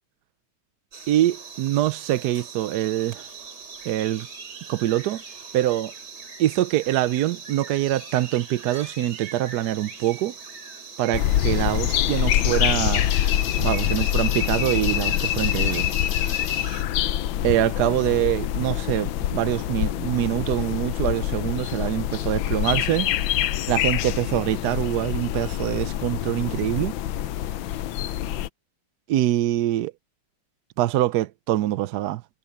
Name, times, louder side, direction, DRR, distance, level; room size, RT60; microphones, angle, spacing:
sound 1, 0.9-16.8, right 5 dB, 55° right, 3.5 m, -41 dB
voice 1, 1.1-3.3 3.8-4.3 4.7-5.2 5.5-5.9 6.4-10.3 11.0-13.1 13.6-15.9 17.4-23.1 23.7-26.9 29.1-29.9 30.8-32.2, right 14 dB, 70° right, 1.0 m, -24 dB
sound 2, 11.1-28.5, left 12 dB, 75° left, 1.4 m, -25 dB
omnidirectional pair, 2.2 m